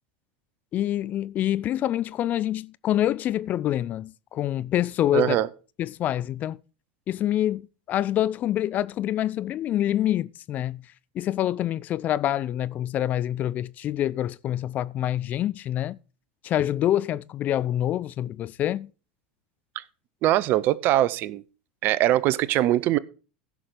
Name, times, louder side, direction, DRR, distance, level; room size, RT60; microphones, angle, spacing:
voice 1, 0.7-5.4 5.8-6.6 7.1-10.8 11.1-16.0 16.4-18.9, left 12 dB, 40° left, 0.5 m, -26 dB
voice 2, 5.1-5.5 19.8-19.9 20.2-21.4 21.8-23.0, right 14 dB, 45° right, 0.6 m, -22 dB
15.5 x 6.0 x 5.0 m
hypercardioid pair, 85°, 5 cm